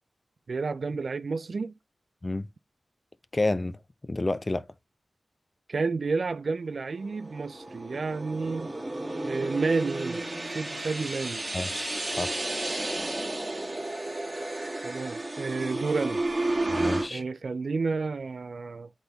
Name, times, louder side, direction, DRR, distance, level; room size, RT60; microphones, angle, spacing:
voice 1, 0.5-1.7 5.7-8.8 9.2-11.5 14.8-16.2 17.1-18.9, right 4 dB, 60° right, 0.3 m, -31 dB
voice 2, 3.3-3.8 4.0-4.7 11.5-12.3 16.7-17.2, left 2 dB, 25° left, 0.4 m, -30 dB
sound 1, 7.0-17.1, right 2 dB, 20° right, 1.6 m, -32 dB
7.9 x 4.1 x 3.3 m
wide cardioid pair, 115°, 0 cm